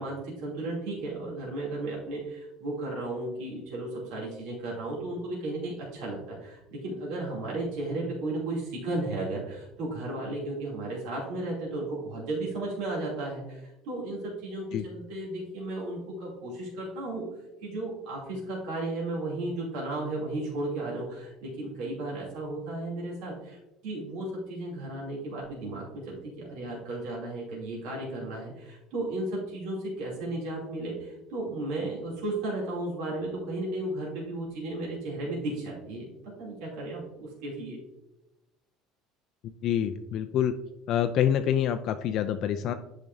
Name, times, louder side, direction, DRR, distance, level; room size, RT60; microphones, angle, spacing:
voice 1, 0.0-17.2 17.6-36.1 36.4-37.8, right 2 dB, 70° right, -4 dB, 2.7 m, -34 dB
voice 2, 39.6-40.5 40.9-42.7, left 9 dB, 45° left, 8 dB, 0.3 m, -26 dB
10.5 x 4.9 x 2.6 m, 0.94 s
cardioid pair, 170°, 0 cm